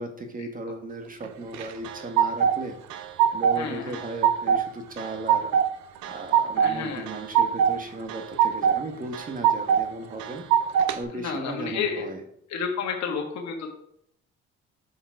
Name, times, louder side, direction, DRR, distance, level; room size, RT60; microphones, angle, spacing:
voice 1, 0.0-2.8 3.3-5.5 6.1-10.4 10.9-12.2, right 2 dB, 30° right, 4 dB, 1.5 m, -36 dB
sound 1, 1.5-2.5 2.9-3.6 3.9-4.6 5.0-5.7 6.0-6.7 7.1-7.7 8.1-8.8 9.1-9.8 10.2-11.0, right 8 dB, 75° right, 0.6 m, -21 dB
voice 2, 3.5-4.0 6.6-7.0 11.1-12.0 12.5-13.7, left 6 dB, 65° left, 1 dB, 1.5 m, -30 dB
7.1 x 3.9 x 4.8 m, 0.71 s
supercardioid pair, 60°, 29 cm